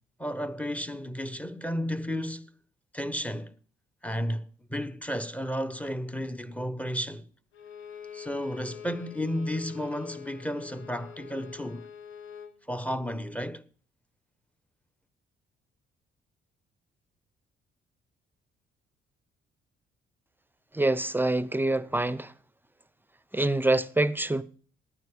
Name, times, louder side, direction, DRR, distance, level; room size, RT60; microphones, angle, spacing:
voice 1, 0.2-2.5 2.9-3.5 4.0-7.3 8.1-11.9 12.7-13.6, equal, 5° left, 1.1 m, -33 dB
Bowed string instrument, 7.5-12.6, left 8 dB, 80° left, 1.5 m, -45 dB
voice 2, 20.7-22.3 23.3-24.4, right 2 dB, 10° right, 0.7 m, -25 dB
12.0 x 9.4 x 5.0 m
cardioid pair, 90°, 20 cm